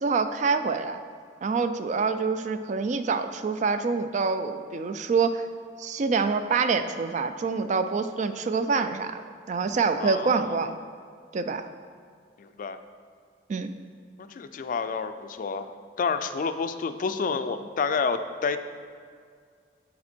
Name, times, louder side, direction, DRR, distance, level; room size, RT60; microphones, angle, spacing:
voice 1, 0.0-1.0 1.4-5.4 5.8-9.2 9.5-10.7 11.3-11.6 13.5-13.7, right 4 dB, 40° right, 10 dB, 0.3 m, -26 dB
voice 2, 10.0-10.6 12.4-12.8 14.2-15.7 16.0-18.6, left 5 dB, 50° left, 10 dB, 0.3 m, -29 dB
8.5 x 4.2 x 4.4 m, 2.1 s
head